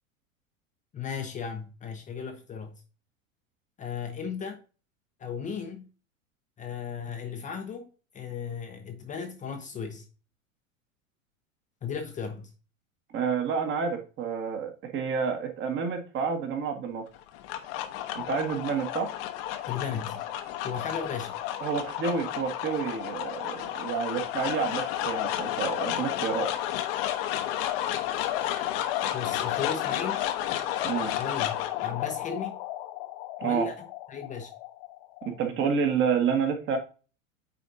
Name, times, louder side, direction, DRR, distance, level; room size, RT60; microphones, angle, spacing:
voice 1, 0.9-2.8 3.8-4.6 5.2-5.9 6.6-7.9 8.1-10.1 11.8-12.5 19.7-20.2 20.6-21.4 29.1-30.3 31.2-32.6 33.4-34.5, left 6 dB, 20° left, 0.7 m, -35 dB
voice 2, 13.1-17.1 18.1-19.1 21.6-26.5 30.8-31.1 33.4-33.7 35.2-36.8, right 6 dB, 30° right, 1.4 m, -29 dB
Alien Ship, 17.1-35.5, left 12 dB, 45° left, 0.9 m, -32 dB
9.0 x 4.2 x 2.6 m
figure-of-eight pair, 90°, 40 cm